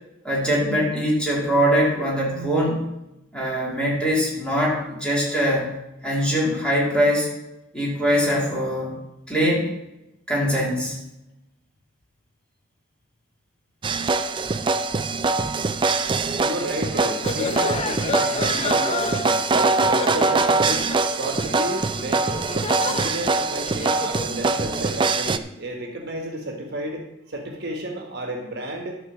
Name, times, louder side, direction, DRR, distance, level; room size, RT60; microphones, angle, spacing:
voice 1, 0.2-2.8 3.3-5.7 6.0-7.3 7.7-8.9 9.3-9.7 10.3-11.0, equal, 5° left, -5 dB, 3.1 m, -22 dB
sound 1, 13.8-25.4, right 3 dB, 25° right, 0.4 m, -23 dB
voice 2, 16.2-22.5 22.8-29.0, right 1 dB, 55° right, 2 dB, 1.5 m, -32 dB
sound 2, 16.9-24.4, left 3 dB, 30° left, 0.6 m, -31 dB
12.0 x 4.5 x 7.2 m, 0.92 s
head